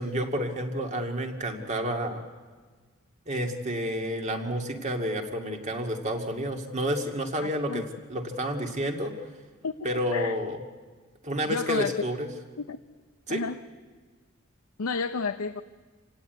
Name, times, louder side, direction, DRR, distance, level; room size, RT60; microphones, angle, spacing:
voice 1, 0.0-2.2 3.3-9.1 9.8-10.6 11.2-12.3 13.3-13.4, equal, 35° right, 4 dB, 2.2 m, -30 dB
voice 2, 7.4-7.8 9.6-10.4 11.5-12.1 12.6-12.8 13.3-13.6 14.8-15.6, left 4 dB, 85° left, 9 dB, 0.7 m, -31 dB
27.0 x 17.5 x 9.4 m, 1.5 s
head